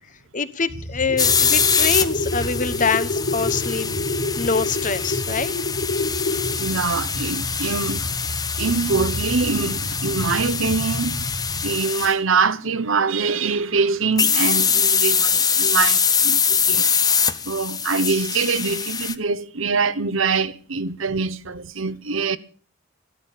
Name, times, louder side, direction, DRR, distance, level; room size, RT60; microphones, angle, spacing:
voice 1, 0.3-3.9 4.4-5.5, left 5 dB, 40° left, 1.0 m, -25 dB
sound 1, 0.7-11.7, left 1 dB, 55° left, 3.8 m, -29 dB
sound 2, 1.2-12.1 14.2-19.1, left 6 dB, 20° left, 0.8 m, -23 dB
voice 2, 6.6-8.0 8.6-11.2 11.6-16.9 17.4-22.4, right 4 dB, 70° right, 1.0 m, -24 dB
14.5 x 13.0 x 6.6 m
head